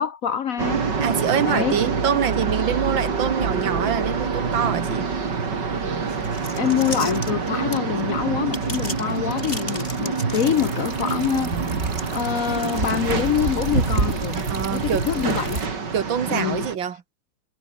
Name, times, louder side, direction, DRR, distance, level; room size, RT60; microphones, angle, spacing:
voice 1, 0.0-0.9 1.4-1.8 6.6-11.5 12.1-14.4 14.7-15.6 16.3-16.7, left 9 dB, 60° left, 1.0 m, -25 dB
sound 1, 0.6-16.8, right 5 dB, 65° right, 3.4 m, -26 dB
voice 2, 1.0-5.1 14.5-15.1 15.9-17.0, right 8 dB, 80° right, 2.4 m, -25 dB
sound 2, 6.1-8.0 8.5-10.9, left 1 dB, 30° left, 7.4 m, -35 dB
sound 3, 10.5-15.7, right 3 dB, 35° right, 3.2 m, -28 dB
omnidirectional pair, 2.0 m